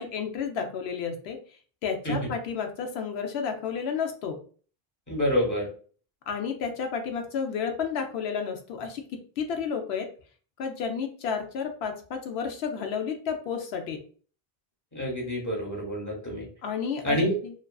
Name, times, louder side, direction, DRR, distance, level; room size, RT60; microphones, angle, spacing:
voice 1, 0.0-1.4 1.8-4.4 6.3-9.0 9.4-10.1 10.6-14.0 16.6-17.5, left 6 dB, 80° left, 5 dB, 0.8 m, -31 dB
voice 2, 5.1-5.7 14.9-16.5 17.0-17.3, equal, 20° left, -2 dB, 0.6 m, -27 dB
2.4 x 2.3 x 2.2 m, 0.41 s
omnidirectional pair, 1.1 m